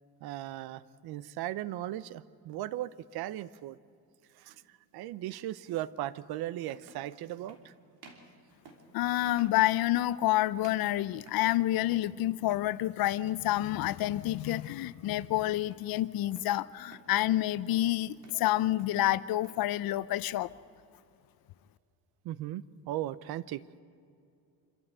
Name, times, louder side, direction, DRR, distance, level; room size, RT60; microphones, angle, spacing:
voice 1, 0.2-3.8 4.3-4.6 4.9-7.7 22.2-23.6, right 13 dB, 80° right, 17 dB, 0.8 m, -37 dB
sound 1, 4.4-4.6 6.0-6.1 6.6-7.1 7.5-7.7 8.0-8.3 8.7-8.9 9.3-9.6 10.0-10.3 10.6-11.6 11.9-12.2 12.4-12.8 13.3-13.5 13.8-14.1 14.5-14.7 15.0-15.4 15.7-16.5 16.9-17.2 17.5-17.8 18.1-18.5 18.8-19.7, right 3 dB, 55° right, 3.2 m, -56 dB
voice 2, 8.9-20.5, left 15 dB, 70° left, 17 dB, 0.7 m, -28 dB
26.5 x 13.5 x 8.0 m, 2.5 s
cardioid pair, 140°, 37 cm